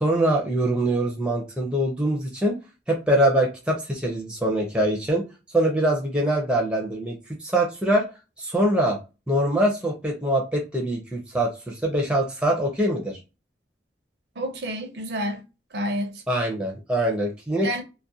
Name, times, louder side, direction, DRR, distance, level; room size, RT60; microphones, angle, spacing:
voice 1, 0.0-2.6 2.9-5.2 5.5-7.1 7.4-8.0 8.4-9.0 9.3-13.2 16.3-17.8, right 1 dB, 5° right, 0.4 m, -23 dB
voice 2, 14.4-15.4 15.7-16.2 17.6-17.8, equal, 65° right, 0.5 m, -29 dB
2.3 x 2.1 x 2.7 m
head